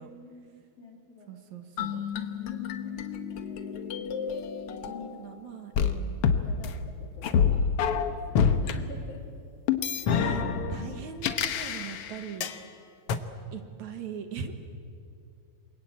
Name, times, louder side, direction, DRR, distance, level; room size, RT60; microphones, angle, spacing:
voice 1, 0.0-1.3 1.9-2.0 2.3-4.1 4.7-5.1 6.4-9.2 9.9-10.1, left 4 dB, 45° left, 2 dB, 4.2 m, -50 dB
voice 2, 1.3-2.0 4.8-6.2 10.1-10.4 10.7-12.5 13.5-14.6, right 7 dB, 65° right, 7 dB, 2.7 m, -40 dB
sound 1, 1.8-5.3 5.8-8.8 9.7-12.6 13.1-13.2, left 6 dB, 60° left, 1.6 m, -28 dB
28.5 x 23.0 x 8.6 m, 2.4 s
omnidirectional pair, 3.8 m